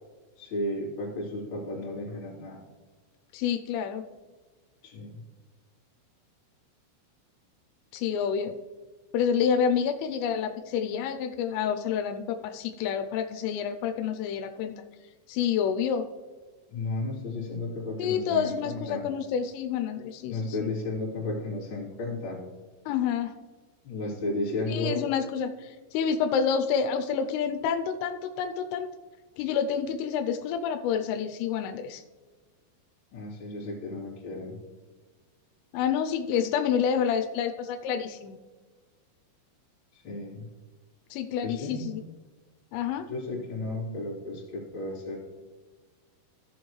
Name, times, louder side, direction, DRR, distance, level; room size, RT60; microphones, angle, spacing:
voice 1, 0.4-2.6 4.8-5.1 16.7-19.0 20.3-22.4 23.8-25.0 33.1-34.6 40.0-40.4 41.4-41.9 43.1-45.2, left 2 dB, 30° left, -6 dB, 2.8 m, -33 dB
voice 2, 3.3-4.0 7.9-8.5 9.1-14.7 15.3-16.0 18.0-20.7 22.9-23.3 24.7-28.9 29.4-32.0 35.7-38.4 41.1-42.0 42.7-43.0, left 7 dB, 85° left, 8 dB, 3.2 m, -28 dB
15.5 x 7.1 x 3.2 m, 1.4 s
omnidirectional pair, 5.7 m